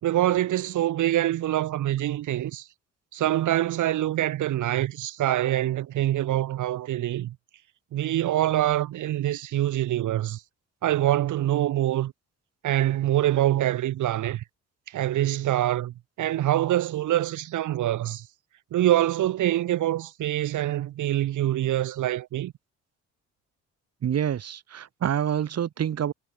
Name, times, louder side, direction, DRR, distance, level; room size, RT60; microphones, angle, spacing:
voice 1, 0.0-2.6 3.1-7.3 7.9-10.4 10.8-12.1 12.6-14.4 14.9-18.2 18.7-22.5, right 13 dB, 80° right, 3.2 m, -25 dB
voice 2, 24.0-26.1, right 9 dB, 55° right, 2.4 m, -27 dB
cardioid pair, 90°, 30 cm